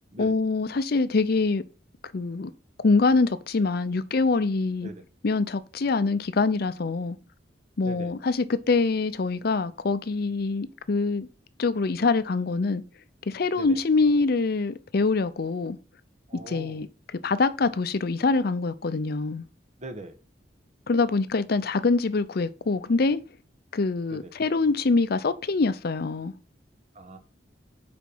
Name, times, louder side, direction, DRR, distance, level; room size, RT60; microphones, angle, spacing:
voice 1, 0.2-1.6 2.1-2.5 2.8-4.9 5.2-7.2 7.8-11.3 11.6-12.8 13.3-15.8 16.5-16.9 17.2-19.4 20.9-23.2 23.7-26.3, left 3 dB, 55° left, 0.5 m, -24 dB
voice 2, 16.3-16.8 19.8-20.2 24.1-24.3 26.9-27.2, right 1 dB, 40° right, 1.2 m, -40 dB
7.4 x 5.2 x 5.4 m
head